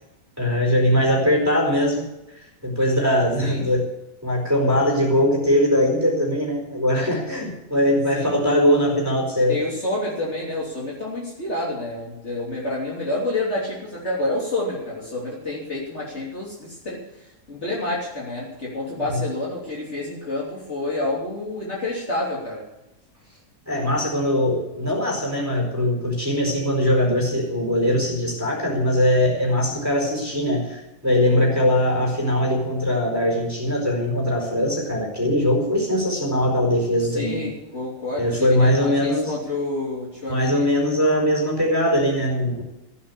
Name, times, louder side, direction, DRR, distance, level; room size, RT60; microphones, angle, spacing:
voice 1, 0.4-2.0 2.6-3.9 4.2-9.6 19.1-19.2 23.7-37.5 38.1-39.4 40.3-42.6, left 1 dB, 10° right, -1 dB, 4.5 m, -21 dB
voice 2, 9.5-22.7 37.0-40.7, left 2 dB, 50° left, -5 dB, 3.6 m, -29 dB
15.5 x 8.6 x 8.3 m, 0.92 s
omnidirectional pair, 1.5 m